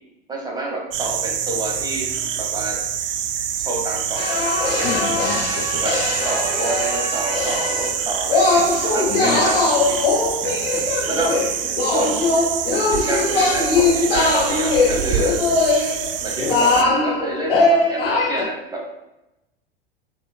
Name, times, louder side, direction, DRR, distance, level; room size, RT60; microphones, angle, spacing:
voice 1, 0.3-2.1 2.3-2.8 3.6-4.4 4.8-5.0 5.8-6.0 6.2-10.0 10.7-11.4 11.9-12.3 13.0-15.5 16.2-18.8, right 2 dB, 15° right, -1 dB, 1.0 m, -28 dB
sound 1, 0.9-16.8, right 9 dB, 65° right, 0.5 m, -26 dB
sound 2, 4.2-8.0 8.3-18.4, left 3 dB, 80° left, 0.8 m, -20 dB
voice 2, 4.8-5.8 9.1-9.5 10.4-10.9, left 7 dB, 40° left, 8 dB, 0.4 m, -30 dB
4.3 x 3.5 x 2.2 m, 0.93 s
figure-of-eight pair, 85°, 29 cm